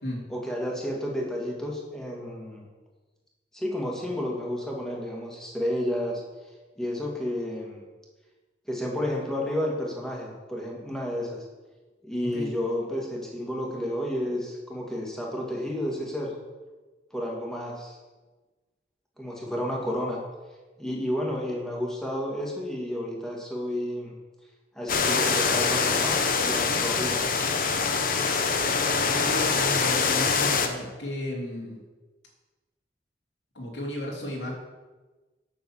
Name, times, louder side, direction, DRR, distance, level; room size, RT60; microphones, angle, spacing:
voice 1, 0.3-2.7 3.5-6.2 6.8-7.8 8.7-11.4 12.0-16.3 17.1-18.0 19.2-20.2 20.8-24.1 24.7-27.2, left 1 dB, 5° left, -2 dB, 2.3 m, -31 dB
sound 1, 24.9-30.7, left 5 dB, 55° left, 1.0 m, -24 dB
voice 2, 29.1-31.8 33.5-34.5, left 1 dB, 90° left, -2 dB, 3.1 m, -34 dB
9.2 x 6.6 x 7.4 m, 1.2 s
head